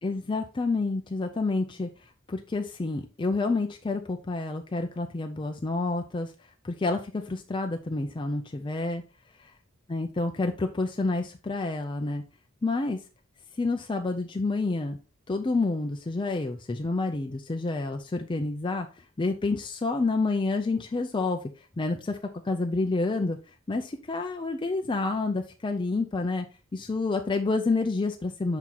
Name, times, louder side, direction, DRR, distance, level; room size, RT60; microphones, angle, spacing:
voice 1, 0.0-1.9 2.3-6.3 6.6-9.0 9.9-12.2 12.6-13.0 13.6-15.0 15.3-22.2 22.4-23.4 23.7-26.5 26.7-28.6, left 3 dB, 25° left, 5 dB, 0.4 m, -29 dB
5.7 x 4.6 x 3.8 m, 0.33 s
head